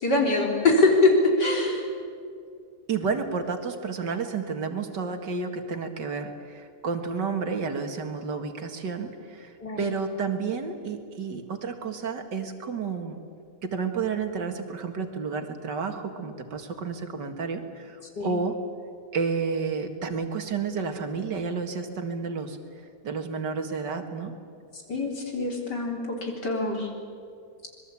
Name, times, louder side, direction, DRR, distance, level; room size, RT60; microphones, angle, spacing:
voice 1, 0.0-1.8 9.6-9.8 18.2-18.3 24.9-26.9, left 2 dB, 75° left, 1 dB, 4.4 m, -23 dB
voice 2, 2.9-13.2 13.6-18.6 19.1-22.6 23.0-24.3, right 5 dB, 85° right, 6 dB, 2.5 m, -31 dB
25.5 x 21.5 x 8.5 m, 2.4 s
omnidirectional pair, 1.8 m